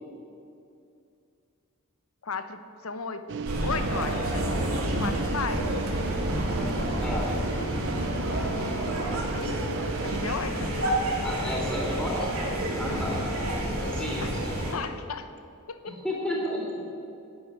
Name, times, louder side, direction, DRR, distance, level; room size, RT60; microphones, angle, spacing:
voice 1, 2.2-3.2 3.6-4.5 5.0-5.7 9.3-10.8 12.9-13.3 14.2-15.3 15.7-15.9, left 5 dB, 80° left, 10 dB, 0.8 m, -35 dB
sound 1, 3.3-10.4, right 5 dB, 55° right, 0.4 m, -35 dB
sound 2, 3.4-14.7, right 1 dB, 85° right, 2.4 m, -29 dB
voice 2, 11.2-12.3 12.8-13.1 13.9-14.5 15.8-16.8, left 1 dB, 5° left, -4 dB, 2.9 m, -32 dB
10.0 x 8.3 x 9.6 m, 2.5 s
head